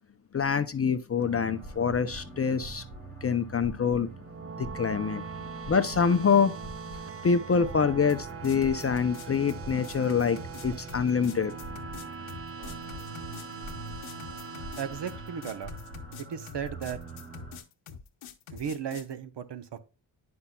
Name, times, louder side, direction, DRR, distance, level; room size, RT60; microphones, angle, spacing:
voice 1, 0.3-2.8 3.2-4.1 4.6-5.2 5.7-6.5 7.2-11.8, left 6 dB, 30° left, 0.5 m, -26 dB
sound 1, 1.2-17.6, right 2 dB, 80° right, 3.1 m, -45 dB
sound 2, 4.1-16.4, right 5 dB, 30° right, 0.5 m, -42 dB
sound 3, 8.1-19.1, left 7 dB, 75° left, 1.0 m, -46 dB
voice 2, 14.8-15.7 16.2-17.0 18.5-19.8, right 7 dB, 55° right, 0.9 m, -35 dB
9.5 x 5.7 x 2.2 m
cardioid pair, 70°, 49 cm